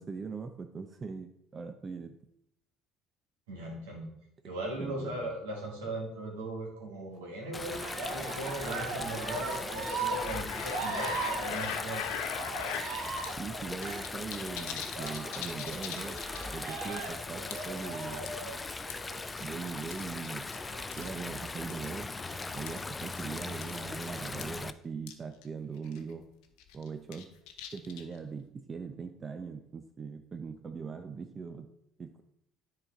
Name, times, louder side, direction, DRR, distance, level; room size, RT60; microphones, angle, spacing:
voice 1, 0.0-2.2 4.8-5.3 13.4-16.2 16.5-18.4 19.4-20.5 21.0-22.1 22.5-26.3 26.7-27.3 27.7-31.7 32.0-32.2, right 5 dB, 35° right, 7 dB, 0.6 m, -41 dB
voice 2, 3.5-4.1 4.4-12.0, right 1 dB, 85° right, -1 dB, 2.1 m, -38 dB
Stream, 7.5-24.7, left 3 dB, 25° left, 0.4 m, -40 dB
Cheering, 7.6-19.3 20.5-21.4 22.1-22.8, right 3 dB, 70° right, 1.2 m, -39 dB
sound 1, 10.2-12.9 13.2-13.3 13.6-16.6 16.9-17.1 17.5-17.8 18.3-19.1 19.9-20.6 20.9-21.1 21.7-21.9 22.7-22.8 23.2-23.3 23.6-23.8 24.0-24.1 24.4-24.5 25.1-25.2 25.4-25.5 25.9-26.1 26.6-28.2, left 8 dB, 75° left, 0.7 m, -39 dB
10.0 x 4.1 x 4.4 m, 0.76 s
hypercardioid pair, 60°, 0 cm